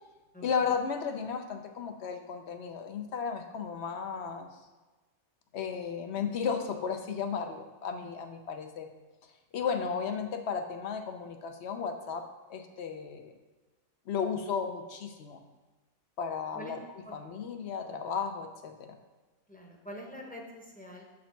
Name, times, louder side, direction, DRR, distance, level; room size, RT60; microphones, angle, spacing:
voice 1, 0.4-4.5 5.5-8.9 9.5-13.3 14.1-15.4 16.2-19.0, left 6 dB, 65° left, 6 dB, 0.9 m, -34 dB
voice 2, 19.5-21.0, equal, 10° left, 0 dB, 0.9 m, -45 dB
7.1 x 5.1 x 4.5 m, 1.2 s
omnidirectional pair, 1.3 m